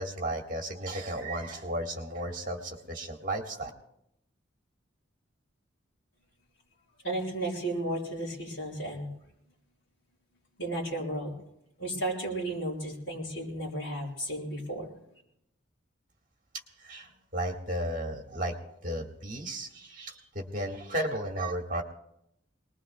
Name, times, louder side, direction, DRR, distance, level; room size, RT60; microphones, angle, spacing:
voice 1, 0.0-3.7 16.8-21.8, right 1 dB, 45° right, 2 dB, 1.8 m, -34 dB
voice 2, 7.0-9.1 10.6-11.3 11.8-14.9, right 1 dB, 65° left, -4 dB, 6.4 m, -33 dB
24.0 x 20.5 x 2.4 m, 0.78 s
head